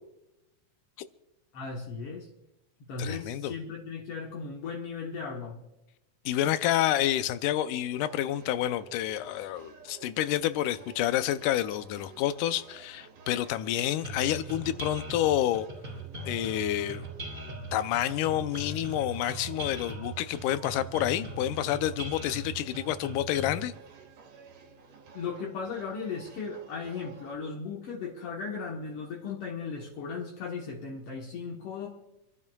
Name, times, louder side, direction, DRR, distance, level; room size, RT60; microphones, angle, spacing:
voice 1, 1.5-2.3 2.9-5.6 25.1-31.9, left 5 dB, 60° left, 1.7 m, -36 dB
voice 2, 3.0-3.5 6.3-15.7 16.3-17.1 17.7-23.7, left 12 dB, 80° left, 2.0 m, -29 dB
sound 1, 8.0-27.4, right 5 dB, 75° right, 3.0 m, -52 dB
sound 2, 14.0-23.6, right 2 dB, 15° right, 2.4 m, -40 dB
29.0 x 12.0 x 2.3 m
omnidirectional pair, 3.9 m